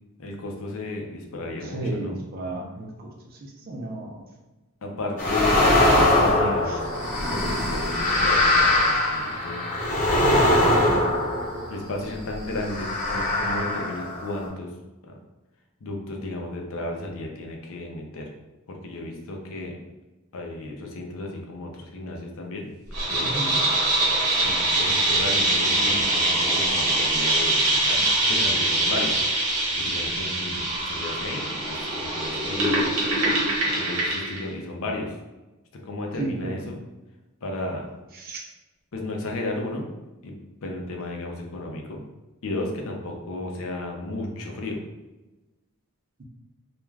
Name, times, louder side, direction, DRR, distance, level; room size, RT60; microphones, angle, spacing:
voice 1, 0.2-2.2 4.8-5.6 6.0-6.9 7.3-11.1 11.7-14.7 15.0-15.1 15.8-18.3 18.7-19.8 20.3-22.7 23.0-23.5 24.4-29.2 29.8-32.8 33.7-35.2 35.8-36.8 37.4-37.9 38.9-39.9 40.2-40.3 40.6-42.0 42.4-44.8, left 2 dB, 65° left, 1 dB, 0.6 m, -34 dB
voice 2, 1.6-4.2 6.7-6.8 23.2-23.6 36.2-36.6 38.1-38.5, right 2 dB, 45° right, 1 dB, 0.5 m, -33 dB
sound 1, 5.2-11.9 12.6-14.5, left 1 dB, 35° left, 0.9 m, -22 dB
sound 2, 22.9-34.4, right 2 dB, 80° right, 0.9 m, -23 dB
2.4 x 2.3 x 3.2 m, 1.1 s
head